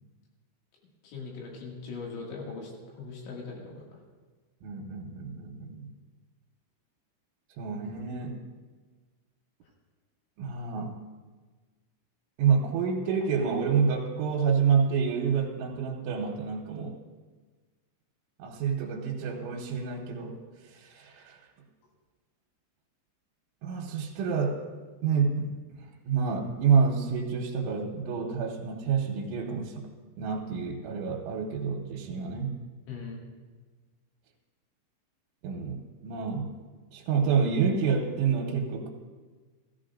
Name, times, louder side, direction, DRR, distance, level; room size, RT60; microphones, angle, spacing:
voice 1, 1.0-3.8 32.9-33.2, left 4 dB, 85° left, -2 dB, 4.6 m, -40 dB
voice 2, 4.6-5.9 7.6-8.4 10.4-11.0 12.4-17.0 18.4-20.4 20.6-21.4 23.6-24.6 25.0-29.9 30.2-32.6 35.4-36.5 36.9-38.9, right 6 dB, 85° right, -2 dB, 3.3 m, -28 dB
15.5 x 14.5 x 2.5 m, 1.4 s
omnidirectional pair, 5.4 m